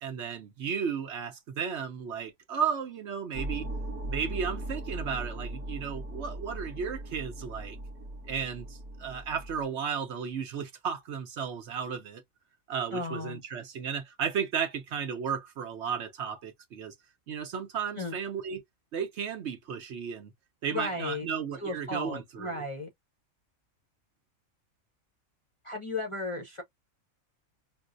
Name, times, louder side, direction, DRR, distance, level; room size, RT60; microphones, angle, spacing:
voice 1, 0.0-3.7 4.1-7.8 8.3-12.2 12.7-16.9 17.3-18.6 18.9-20.3 20.6-22.6, right 7 dB, 60° right, 0.9 m, -34 dB
sound 1, 3.3-9.6, right 1 dB, 85° right, 1.1 m, -38 dB
voice 2, 12.9-13.4 18.0-18.2 20.7-21.3 21.6-22.9 25.6-26.6, left 2 dB, 30° left, 0.6 m, -35 dB
5.2 x 2.0 x 2.5 m
omnidirectional pair, 1.4 m